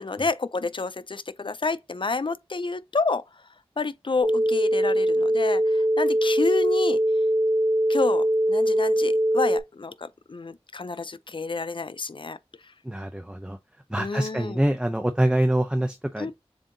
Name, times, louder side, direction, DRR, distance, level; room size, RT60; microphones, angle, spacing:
voice 1, 0.0-3.2 3.8-7.0 7.9-12.4 14.0-14.6 16.2-16.3, left 3 dB, 55° left, 0.4 m, -29 dB
sound 1, 4.2-9.6, right 1 dB, 35° right, 1.6 m, -22 dB
voice 2, 12.8-13.6 13.9-16.3, right 1 dB, 10° right, 0.5 m, -25 dB
7.2 x 2.7 x 2.6 m
wide cardioid pair, 50°, 11 cm